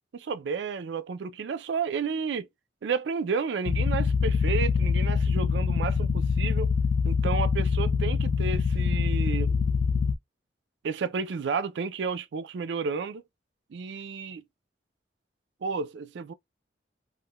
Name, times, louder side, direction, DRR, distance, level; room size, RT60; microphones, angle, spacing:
voice 1, 0.1-2.5 2.8-6.7 7.0-9.5 10.8-13.2 13.7-14.4 15.6-16.3, right 5 dB, 75° right, 0.4 m, -31 dB
sound 1, 3.7-10.2, left 5 dB, 65° left, 0.3 m, -25 dB
3.6 x 2.1 x 2.2 m
head